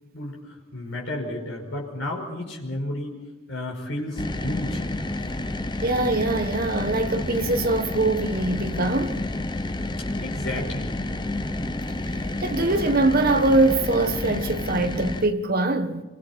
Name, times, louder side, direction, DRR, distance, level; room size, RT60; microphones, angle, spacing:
voice 1, 0.7-3.2 3.5-4.8 10.1-11.0, left 1 dB, 60° left, 5.5 m, -32 dB
sound 1, 4.2-15.3, left 1 dB, 20° left, 0.8 m, -30 dB
voice 2, 5.8-9.2 12.4-16.0, right 2 dB, 45° right, 1.4 m, -23 dB
27.5 x 23.5 x 4.5 m
head